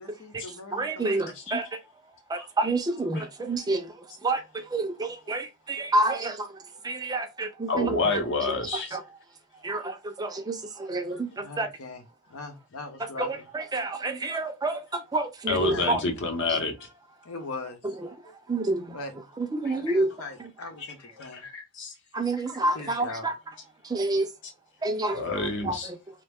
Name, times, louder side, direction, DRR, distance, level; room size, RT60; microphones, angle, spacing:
voice 1, 0.0-1.3 4.2-4.4 6.7-7.1 9.8-9.9 10.6-10.8 11.3-13.5 15.5-15.9 17.2-17.8 18.9-19.1 19.8-21.7 22.3-23.3, left 3 dB, 90° left, 0.8 m, -41 dB
voice 2, 0.7-1.6 2.6-3.8 4.2-4.4 4.7-6.3 6.9-8.2 8.9-9.0 9.6-9.8 10.2-10.6 10.9-11.3 11.6-11.7 13.2-14.8 15.1-16.0 18.5-18.8 19.5-20.1 22.1-23.3 23.9-24.3 24.8-25.2 25.7-25.8, right 2 dB, 20° right, 0.4 m, -27 dB
voice 3, 1.3-1.8 2.3-2.5 3.1-3.3 7.7-9.0 15.5-16.7 19.6-19.8 21.2-21.4 21.8-21.9 25.1-25.9, left 3 dB, 55° left, 0.7 m, -28 dB
3.0 x 2.1 x 3.5 m
head